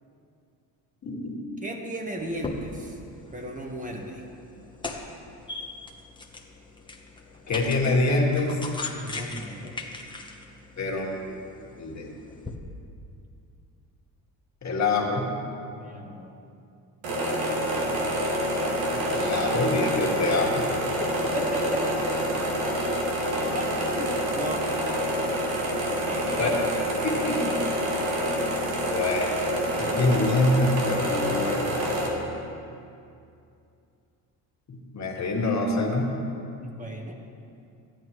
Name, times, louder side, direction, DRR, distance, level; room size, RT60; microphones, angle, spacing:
voice 1, 1.0-1.4 7.5-8.6 10.8-11.1 11.8-12.1 14.6-15.3 18.9-20.7 26.4-26.5 27.0-27.4 28.9-29.4 29.8-31.9 34.7-36.1, left 2 dB, 40° left, -1 dB, 1.9 m, -25 dB
voice 2, 1.6-3.0 3.3-4.2 8.9-9.8 15.7-16.4 21.3-22.0 22.5-23.0 23.5-24.7 36.6-37.2, right 1 dB, 20° right, 1 dB, 1.3 m, -36 dB
sound 1, 2.2-12.6, left 3 dB, 10° left, 1.0 m, -40 dB
sound 2, 17.0-32.1, equal, 85° right, 1.8 m, -27 dB
13.0 x 10.5 x 3.1 m, 2.5 s
supercardioid pair, 80°, 43 cm